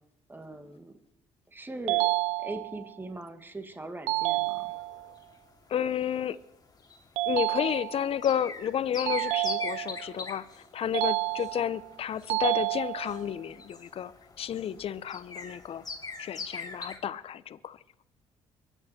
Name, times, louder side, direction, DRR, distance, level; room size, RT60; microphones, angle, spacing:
voice 1, 0.3-1.0 1.5-2.1 2.4-4.7, right 2 dB, 15° right, 2.0 m, -40 dB
sound 1, 1.9-2.9 4.1-5.1 7.2-8.2 9.1-10.1 10.9-11.8 12.3-13.3, right 20 dB, 80° right, 0.5 m, -29 dB
sound 2, 4.2-17.0, left 4 dB, 35° left, 2.5 m, -43 dB
voice 2, 5.7-6.4 7.3-14.1 14.4-15.8 16.2-17.8, left 9 dB, 55° left, 0.8 m, -31 dB
23.0 x 10.0 x 4.4 m
supercardioid pair, 65°, 12 cm